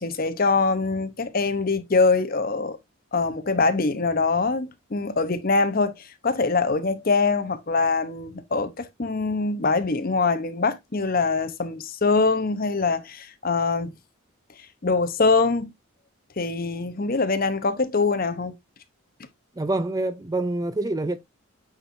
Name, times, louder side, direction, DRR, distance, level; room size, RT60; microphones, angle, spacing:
voice 1, 0.0-2.8 3.1-13.9 14.8-15.7 16.4-18.5, left 4 dB, 40° left, 0.8 m, -23 dB
voice 2, 19.6-21.2, right 2 dB, 15° right, 0.4 m, -26 dB
8.7 x 4.4 x 2.6 m
head